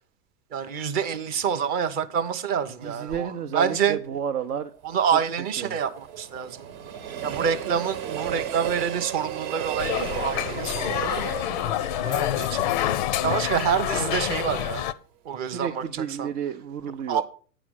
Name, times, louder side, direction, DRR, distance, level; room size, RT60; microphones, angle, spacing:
voice 1, 0.5-4.0 4.8-6.7 7.2-11.0 11.5-12.7 13.2-14.9 15.3-16.3 17.1-17.2, right 7 dB, 20° right, 0.5 m, -27 dB
voice 2, 2.8-4.7 5.1-5.2 5.6-5.8 15.4-17.2, right 8 dB, 75° right, 0.8 m, -31 dB
Train, 4.7-13.8 14.2-14.3, right 10 dB, 55° right, 1.1 m, -35 dB
sound 1, 9.8-14.9, left 13 dB, 35° left, 0.4 m, -27 dB
8.9 x 5.0 x 6.2 m
hypercardioid pair, 120°, 46 cm